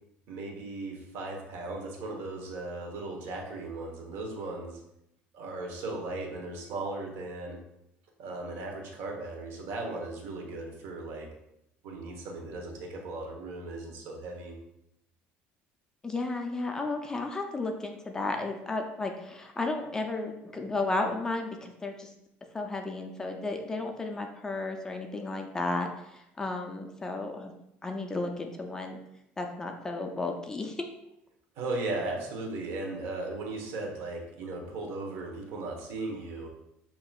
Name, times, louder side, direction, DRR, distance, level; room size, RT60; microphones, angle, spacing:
voice 1, 0.3-4.8 5.3-7.6 8.2-11.3 11.8-14.6 31.6-36.5, right 2 dB, 65° right, 1 dB, 1.1 m, -37 dB
voice 2, 16.0-22.1 22.5-27.5 27.8-29.0 29.4-30.9, left 2 dB, 15° left, 3 dB, 0.4 m, -33 dB
7.2 x 2.9 x 2.4 m, 0.82 s
cardioid pair, 150°, 4 cm